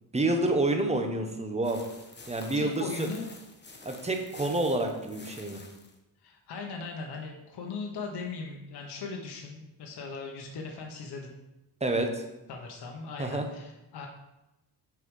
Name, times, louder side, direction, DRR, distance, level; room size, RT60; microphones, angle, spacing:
voice 1, 0.1-1.8 2.3-3.1 3.8-5.6 11.8-12.2 13.2-13.5, right 2 dB, 15° right, 4 dB, 1.1 m, -28 dB
sound 1, 1.6-6.0, left 3 dB, 25° left, 1.1 m, -49 dB
voice 2, 2.5-3.3 6.2-11.4 12.5-14.1, left 4 dB, 70° left, 1 dB, 1.2 m, -39 dB
6.6 x 4.8 x 5.4 m, 0.95 s
cardioid pair, 105°, 41 cm